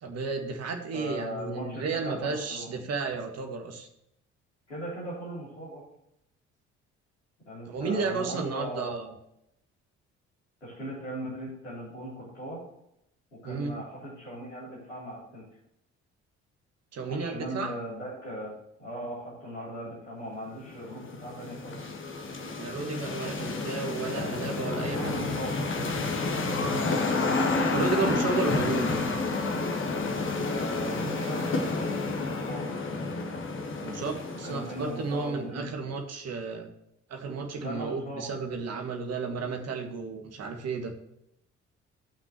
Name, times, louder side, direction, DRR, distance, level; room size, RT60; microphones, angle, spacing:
voice 1, 0.0-3.9 7.7-9.1 13.4-13.7 16.9-17.7 22.6-25.1 27.0-27.4 27.7-28.9 33.8-36.7 37.1-40.9, right 4 dB, 45° right, 3 dB, 1.8 m, -33 dB
voice 2, 0.9-2.7 4.7-5.8 7.5-8.9 10.6-12.6 13.3-15.4 17.1-18.5 18.8-21.8 24.9-25.5 26.6-27.4 30.3-32.7 34.3-35.9 37.5-38.2, equal, 85° left, -10 dB, 3.6 m, -38 dB
sound 1, 20.7-35.2, left 3 dB, 35° left, 1.5 m, -30 dB
14.5 x 5.9 x 3.1 m, 0.78 s
figure-of-eight pair, 45°, 35 cm